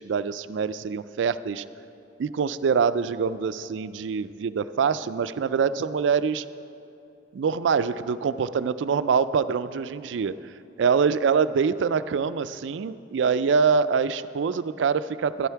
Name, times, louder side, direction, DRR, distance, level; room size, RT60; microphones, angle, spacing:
voice 1, 0.0-1.6 2.2-6.4 7.3-10.4 10.8-15.5, right 6 dB, 85° right, 14 dB, 0.4 m, -24 dB
11.5 x 11.5 x 4.5 m, 2.7 s
head